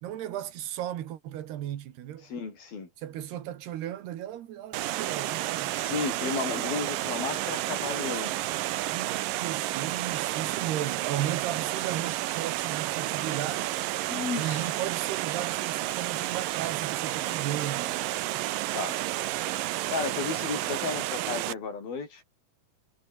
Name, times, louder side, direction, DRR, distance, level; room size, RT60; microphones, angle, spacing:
voice 1, 0.0-2.3 3.0-5.8 8.9-13.7 14.4-18.5, right 12 dB, 85° right, 3.8 m, -35 dB
voice 2, 2.3-2.9 5.7-8.3 14.1-14.9 18.7-19.0 19.9-22.2, left 5 dB, 65° left, 7.3 m, -33 dB
Water, 4.7-21.5, right 16 dB, 70° right, 2.3 m, -31 dB
omnidirectional pair, 4.5 m